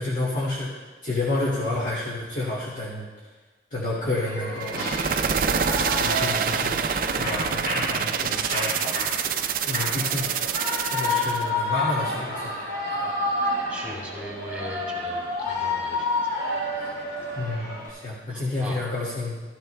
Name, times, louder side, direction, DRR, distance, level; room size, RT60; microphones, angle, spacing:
voice 1, 0.0-3.1 3.7-4.9 5.9-6.8 7.1-9.3 9.6-10.4 10.9-13.1 17.3-19.4, left 2 dB, 45° left, -7 dB, 1.7 m, -30 dB
Shout / Cheering, 4.0-17.9, left 2 dB, 65° left, 3.3 m, -30 dB
sound 1, 4.6-11.4, right 7 dB, 50° right, 0.4 m, -26 dB
voice 2, 13.4-16.1 18.3-18.8, equal, 10° right, -4 dB, 3.1 m, -39 dB
14.5 x 14.0 x 2.2 m, 1.3 s
head